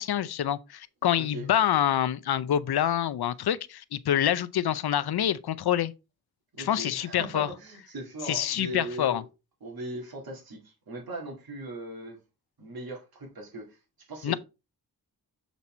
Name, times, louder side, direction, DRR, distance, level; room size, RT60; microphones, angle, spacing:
voice 1, 0.0-5.9 6.6-7.5 8.3-9.2 14.2-14.3, left 10 dB, 85° left, 0.6 m, -26 dB
voice 2, 1.2-1.5 6.6-9.3 9.6-12.2 12.6-13.8 14.1-14.4, right 1 dB, 70° right, 2.1 m, -39 dB
7.2 x 4.1 x 4.3 m
wide cardioid pair, 130°, 37 cm